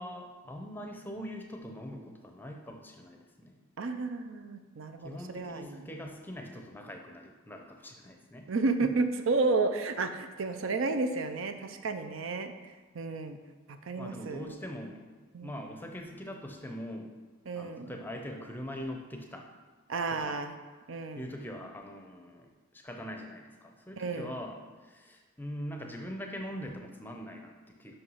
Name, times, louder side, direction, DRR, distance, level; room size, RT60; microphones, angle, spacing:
voice 1, 0.0-3.6 5.0-8.5 8.8-8.9 14.0-15.1 15.4-17.1 17.5-19.5 20.1-20.4 21.1-27.9, equal, 10° left, 3 dB, 0.6 m, -42 dB
voice 2, 3.8-5.8 8.5-12.5 12.9-13.4 13.7-14.5 15.3-15.5 17.5-17.9 19.9-20.5 20.9-21.3 24.0-24.3, right 3 dB, 65° right, 8 dB, 0.5 m, -32 dB
5.7 x 5.5 x 5.6 m, 1.3 s
head